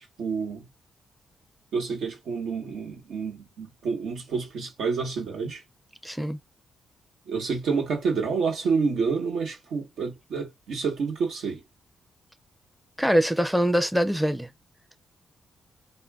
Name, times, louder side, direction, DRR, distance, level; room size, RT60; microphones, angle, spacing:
voice 1, 0.2-0.7 1.7-5.6 7.3-11.6, right 5 dB, 85° right, 1.1 m, -28 dB
voice 2, 6.0-6.4 13.0-14.5, equal, ahead, 0.5 m, -23 dB
2.2 x 2.2 x 3.4 m
cardioid pair, 80°, 0 cm